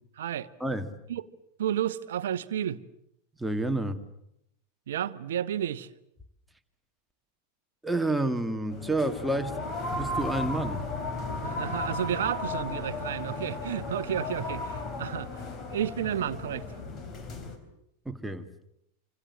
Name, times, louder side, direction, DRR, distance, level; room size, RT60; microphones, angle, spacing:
voice 1, 0.2-0.5 1.1-1.3 1.6-2.8 4.9-5.9 11.4-15.4 15.7-16.7, right 10 dB, 60° right, 1.2 m, -31 dB
voice 2, 3.4-4.0 7.8-9.6 9.9-10.8 18.1-18.5, right 2 dB, 5° right, 2.2 m, -29 dB
sound 1, 8.7-17.6, left 3 dB, 30° left, 4.3 m, -35 dB
27.0 x 26.5 x 7.6 m
figure-of-eight pair, 90°, 0 cm